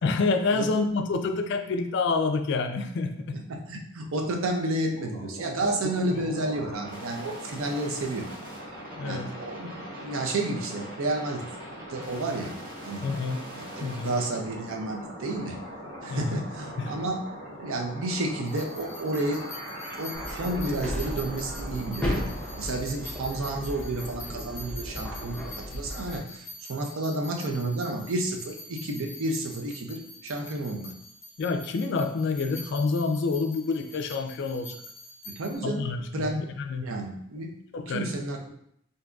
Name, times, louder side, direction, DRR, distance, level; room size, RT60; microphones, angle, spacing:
voice 1, 0.0-3.4 6.0-6.2 9.0-9.3 13.0-13.4 13.8-14.1 16.1-16.4 16.8-16.9 31.4-34.8 35.6-36.3 36.6-36.9 37.7-38.1, left 4 dB, 55° left, 7 dB, 0.3 m, -28 dB
voice 2, 3.5-8.3 9.0-11.4 11.9-12.6 12.8-13.1 13.5-15.6 16.0-17.2 17.5-19.4 20.0-30.9 35.4-36.4 36.8-37.5 37.9-38.5, right 2 dB, 70° right, 2 dB, 0.5 m, -31 dB
sound 1, 4.9-22.7, equal, 40° right, 0.8 m, -41 dB
sound 2, 18.5-35.6, left 1 dB, 35° left, 0.9 m, -46 dB
sound 3, 20.1-26.2, equal, 5° left, 0.5 m, -35 dB
3.7 x 2.6 x 2.3 m, 0.71 s
head